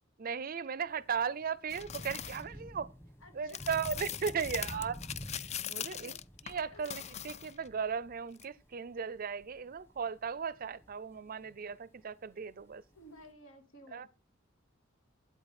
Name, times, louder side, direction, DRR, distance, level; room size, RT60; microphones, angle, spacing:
voice 1, 0.2-2.9 3.3-4.9 5.7-6.1 6.5-12.8 13.9-14.1, right 6 dB, 45° right, 0.5 m, -36 dB
Thunder / Rain, 0.9-13.3, equal, 10° left, 1.2 m, -51 dB
sound 1, 1.7-2.4 3.5-7.7 8.4-8.5, left 10 dB, 35° left, 0.4 m, -41 dB
voice 2, 3.2-5.2 5.8-6.2 6.7-6.9 12.9-14.1, left 1 dB, 80° left, 2.8 m, -55 dB
8.8 x 8.5 x 4.2 m
head